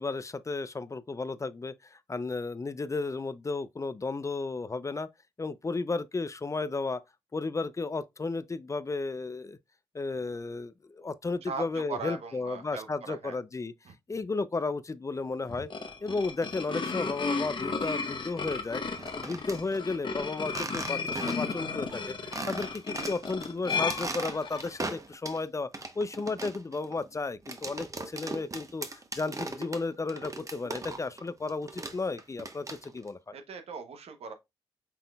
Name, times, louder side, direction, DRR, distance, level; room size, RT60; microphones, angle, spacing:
voice 1, 0.0-5.1 5.4-7.0 7.3-9.6 9.9-13.7 14.1-15.7 16.0-18.8 19.1-33.2, left 3 dB, 30° left, 0.4 m, -33 dB
voice 2, 11.5-13.4 13.9-14.0 22.6-22.7 33.3-34.3, right 5 dB, 70° right, 0.9 m, -39 dB
sound 1, 15.5-24.8, left 4 dB, 50° left, 0.9 m, -34 dB
sound 2, 18.9-19.6 20.5-21.6 21.9-22.0 22.3-23.5 23.8-25.4 25.7-31.2 31.5-33.1, right 2 dB, 30° right, 0.9 m, -38 dB
5.8 x 3.7 x 2.3 m
supercardioid pair, 45°, 11 cm